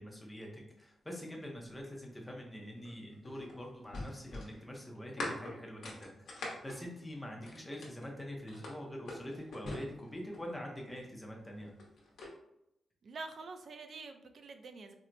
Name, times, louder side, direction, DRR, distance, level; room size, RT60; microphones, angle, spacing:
voice 1, 0.0-11.7, equal, 10° left, 0 dB, 0.6 m, -45 dB
sound 1, 2.8-8.1 8.5-10.6 11.5-12.3, left 2 dB, 80° left, 0.9 m, -43 dB
voice 2, 13.0-14.9, right 3 dB, 50° right, 6 dB, 0.3 m, -46 dB
4.3 x 2.0 x 2.5 m, 0.80 s
wide cardioid pair, 180°, 0 cm